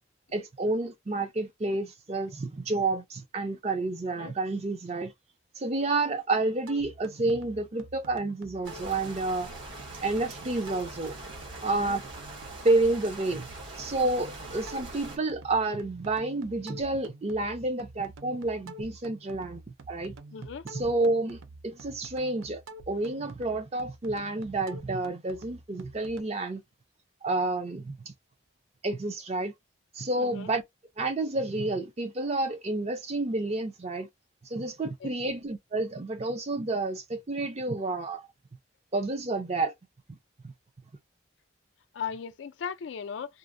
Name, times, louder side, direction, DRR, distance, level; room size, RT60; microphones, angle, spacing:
voice 1, 0.3-5.1 5.6-9.5 10.0-11.2 11.6-12.0 12.6-13.5 13.7-19.6 19.9-20.2 20.6-22.6 22.9-26.6 27.2-28.1 28.8-29.5 29.9-30.6 31.0-34.1 34.4-38.3 38.9-39.7 40.1-40.2 40.4-40.5, right 2 dB, 30° right, 0.5 m, -29 dB
sound 1, 6.7-26.2, right 2 dB, 90° right, 0.5 m, -49 dB
sound 2, 8.6-15.2, right 2 dB, 65° right, 1.2 m, -43 dB
voice 2, 20.3-20.6 30.2-30.5 35.0-35.1 41.9-43.4, left 7 dB, 65° left, 0.3 m, -37 dB
2.5 x 2.0 x 2.5 m
head